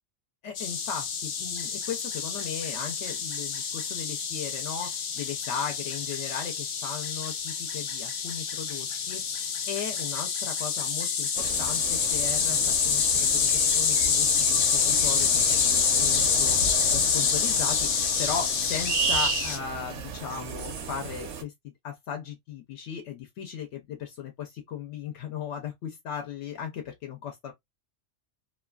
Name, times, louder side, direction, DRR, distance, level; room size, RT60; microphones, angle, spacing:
voice 1, 0.4-27.5, left 7 dB, 80° left, 1.0 m, -37 dB
sound 1, 0.6-19.6, left 6 dB, 60° left, 0.7 m, -27 dB
sound 2, 11.3-21.4, right 6 dB, 75° right, 0.9 m, -34 dB
2.7 x 2.3 x 2.3 m
omnidirectional pair, 1.2 m